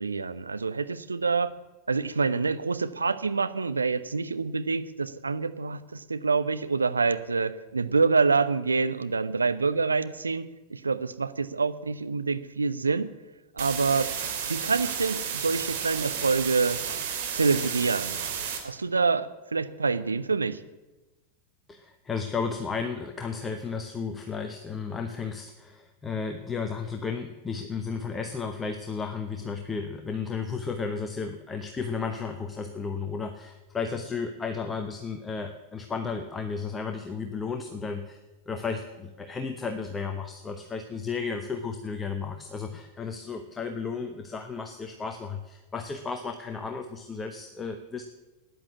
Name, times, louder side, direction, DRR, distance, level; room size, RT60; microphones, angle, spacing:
voice 1, 0.0-1.5 1.9-13.1 13.6-14.1 14.4-16.8 17.3-18.2 18.6-20.6, right 4 dB, 75° right, 12 dB, 0.8 m, -26 dB
sound 1, 13.6-18.6, right 7 dB, 50° right, 3.1 m, -32 dB
voice 2, 21.7-38.2 38.5-48.0, left 5 dB, 15° left, 6 dB, 1.1 m, -33 dB
13.5 x 10.0 x 8.4 m, 1.1 s
figure-of-eight pair, 90°, 0 cm